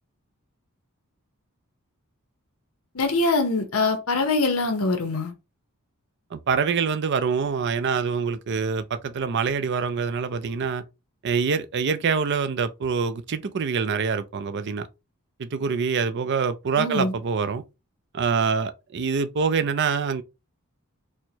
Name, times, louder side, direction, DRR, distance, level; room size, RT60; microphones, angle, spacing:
voice 1, 2.9-5.3 16.8-17.1, left 3 dB, 70° left, 0.8 m, -23 dB
voice 2, 6.3-10.8 11.2-14.9 15.4-17.6 18.1-20.2, right 5 dB, 50° right, 0.4 m, -25 dB
4.4 x 2.1 x 2.7 m
head